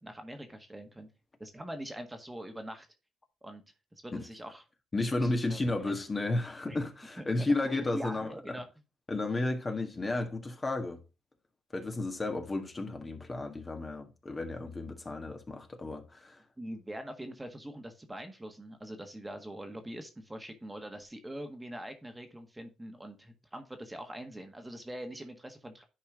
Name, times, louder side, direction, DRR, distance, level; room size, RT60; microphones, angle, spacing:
voice 1, 0.0-1.1 1.4-2.9 3.4-3.6 3.9-4.6 5.1-5.7 6.7-6.8 7.2-8.7 16.6-25.8, right 1 dB, 15° right, 1.6 m, -43 dB
voice 2, 4.9-8.6 9.1-11.0 11.7-16.4, left 2 dB, 30° left, 1.7 m, -33 dB
10.5 x 4.3 x 3.8 m
supercardioid pair, 65°, 0 cm